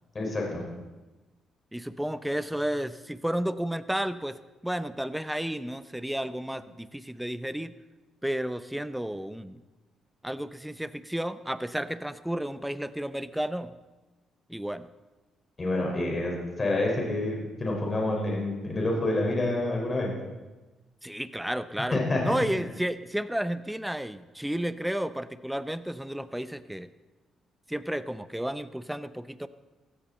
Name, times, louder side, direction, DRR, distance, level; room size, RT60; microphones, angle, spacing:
voice 1, 0.1-0.6 15.6-20.1 21.9-22.6, left 2 dB, 30° left, -1 dB, 5.3 m, -28 dB
voice 2, 1.7-4.4 4.6-7.8 8.2-9.6 10.2-13.7 14.5-14.9 21.0-26.9 27.7-29.5, equal, 5° right, 13 dB, 0.7 m, -32 dB
16.5 x 15.0 x 4.4 m, 1.2 s
cardioid pair, 90°, 0 cm